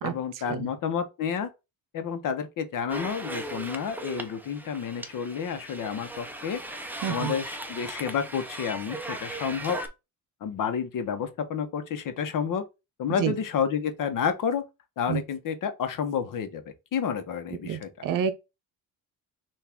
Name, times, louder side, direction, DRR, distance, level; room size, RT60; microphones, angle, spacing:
voice 1, 0.0-1.5 1.9-6.6 7.1-9.8 10.4-12.6 13.0-14.6 15.0-16.6 16.9-17.9, left 7 dB, 55° left, 0.9 m, -30 dB
sound 1, 2.9-9.9, right 1 dB, 5° right, 0.5 m, -38 dB
voice 2, 7.0-7.4 13.2-13.3 15.1-15.2 17.6-18.3, right 8 dB, 60° right, 0.7 m, -28 dB
5.8 x 2.6 x 3.5 m
cardioid pair, 140°, 37 cm